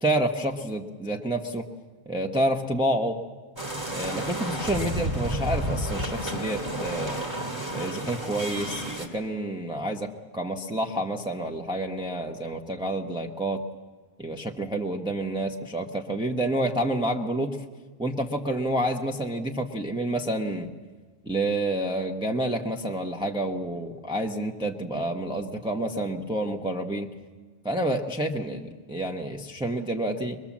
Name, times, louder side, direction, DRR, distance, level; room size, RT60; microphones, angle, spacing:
voice 1, 0.0-1.6 2.1-3.2 3.9-7.2 7.7-13.6 14.2-17.6 18.0-20.7 21.2-27.1 27.6-30.4, right 1 dB, 5° right, 1 dB, 1.0 m, -29 dB
sound 1, 3.6-9.1, right 1 dB, 20° right, 2.8 m, -31 dB
23.0 x 22.5 x 7.3 m, 1.4 s
omnidirectional pair, 1.2 m